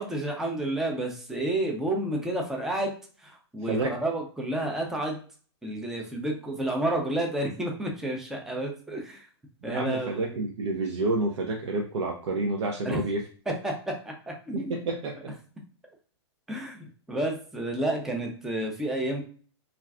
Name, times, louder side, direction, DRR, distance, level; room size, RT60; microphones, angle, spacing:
voice 1, 0.0-2.9 3.2-5.2 5.6-9.3 9.6-10.4 12.8-13.0 13.5-14.7 16.5-19.2, right 1 dB, 5° right, 1 dB, 0.4 m, -30 dB
voice 2, 9.6-13.2 14.5-15.3, right 2 dB, 75° right, 1 dB, 0.5 m, -29 dB
2.4 x 2.2 x 3.4 m, 0.41 s
hypercardioid pair, 140°, 15 cm